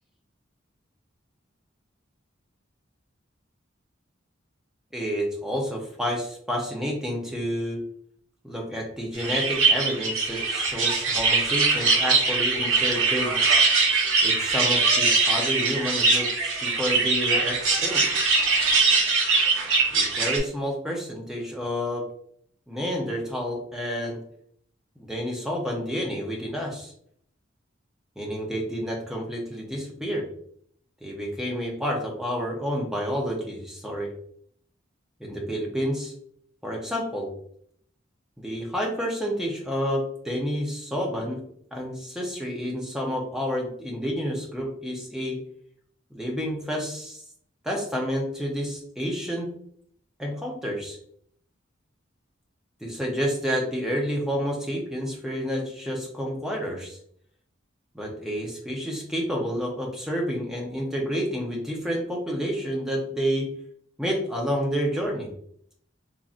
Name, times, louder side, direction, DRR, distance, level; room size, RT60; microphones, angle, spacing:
voice 1, 4.9-7.8 8.4-13.4 14.2-18.0 19.9-22.1 22.7-24.2 25.0-26.9 28.2-30.3 31.0-34.1 35.2-36.1 36.6-37.3 38.4-41.4 41.7-45.4 46.1-47.2 47.6-49.5 50.2-51.0 52.8-57.0 57.9-63.5 64.0-65.3, equal, 5° right, -1 dB, 0.5 m, -29 dB
sound 1, 9.2-20.4, right 4 dB, 90° right, 0.8 m, -22 dB
3.0 x 2.5 x 2.4 m, 0.64 s
head